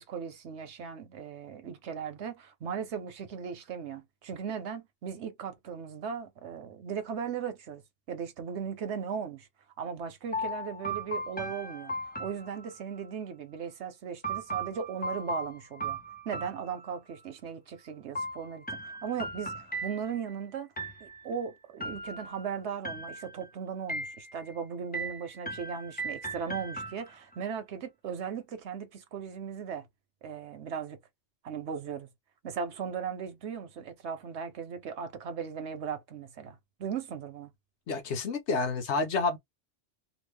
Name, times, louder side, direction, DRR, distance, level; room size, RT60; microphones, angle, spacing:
voice 1, 0.0-7.8 8.1-9.5 9.8-11.9 12.2-16.0 16.2-20.7 21.0-29.9 30.2-31.0 31.4-32.1 32.4-37.5, right 7 dB, 80° right, 1.1 m, -37 dB
sound 1, 10.3-13.1 14.2-17.2 18.2-20.3 20.8-21.4 21.8-22.5 22.8-23.5 23.9-24.5 24.9-27.4, right 1 dB, 15° left, 0.4 m, -37 dB
voice 2, 37.9-39.4, left 3 dB, 85° left, 1.1 m, -29 dB
2.9 x 2.4 x 3.2 m
omnidirectional pair, 1.1 m